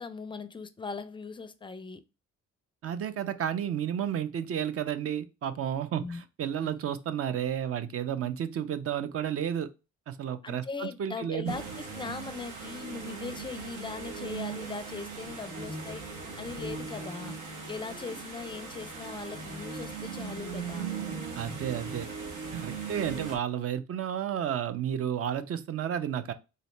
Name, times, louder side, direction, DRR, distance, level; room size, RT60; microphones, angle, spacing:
voice 1, 0.0-2.0 6.0-6.2 6.6-6.8 10.4-16.0 16.4-17.4 17.7-20.9, left 4 dB, 15° left, 0.4 m, -40 dB
voice 2, 2.8-9.7 10.1-11.5 21.3-22.1 22.5-26.3, right 9 dB, 50° right, 0.5 m, -32 dB
sound 1, 11.5-23.4, right 5 dB, 85° right, 1.3 m, -39 dB
4.0 x 2.8 x 3.2 m
cardioid pair, 90°, 30 cm